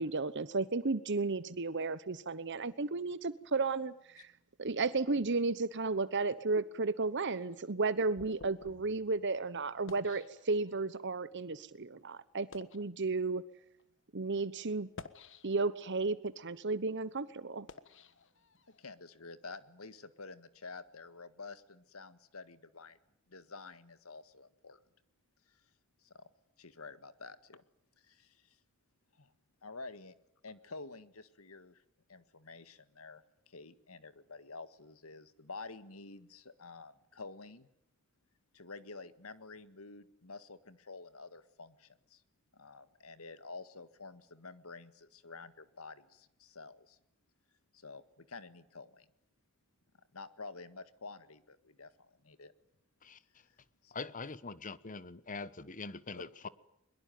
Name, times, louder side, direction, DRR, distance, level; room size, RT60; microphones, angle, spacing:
voice 1, 0.0-4.3 4.6-13.4 14.1-14.9 15.4-17.7, right 3 dB, 55° right, 1.1 m, -33 dB
sound 1, 7.3-11.0 11.7-11.8 12.3-12.9 13.7-13.8 14.8-15.9 16.4-18.9, left 3 dB, 60° left, 1.4 m, -54 dB
voice 2, 18.7-23.0 23.3-24.8 25.5-25.6 26.0-26.3 26.6-27.6 28.0-28.6 29.1-29.3 29.6-30.1 30.4-31.8 32.1-37.7 38.5-42.2 42.5-47.0 47.7-49.1 50.1-52.5 53.8-54.0, left 3 dB, 80° left, 1.8 m, -50 dB
voice 3, 53.0-53.4 53.9-56.5, left 4 dB, 40° left, 1.2 m, -43 dB
22.5 x 22.5 x 9.4 m
head